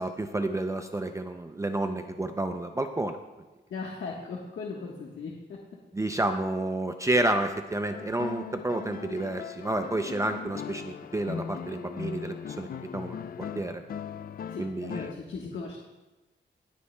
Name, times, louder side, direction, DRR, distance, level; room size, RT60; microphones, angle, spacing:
voice 1, 0.0-3.2 5.9-12.7 12.9-13.8 14.6-15.0, right 2 dB, 15° right, 6 dB, 0.4 m, -30 dB
voice 2, 3.7-5.6 14.5-15.8, left 4 dB, 85° left, -2 dB, 1.3 m, -38 dB
sound 1, 7.9-15.1, left 7 dB, 50° left, 0.4 m, -39 dB
23.0 x 8.3 x 2.2 m, 1.1 s
wide cardioid pair, 160°, 19 cm